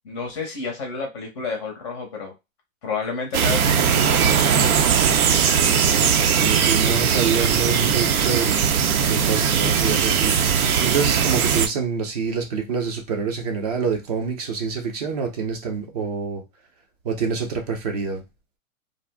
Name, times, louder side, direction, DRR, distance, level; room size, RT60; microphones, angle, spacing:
voice 1, 0.0-2.3 2.8-4.5, left 4 dB, 20° left, 0.5 m, -30 dB
sound 1, 3.3-11.7, right 7 dB, 85° right, 0.6 m, -19 dB
voice 2, 5.6-16.4 17.0-18.2, right 5 dB, 30° right, 0.5 m, -27 dB
2.5 x 2.0 x 3.3 m
hypercardioid pair, 150°, 42 cm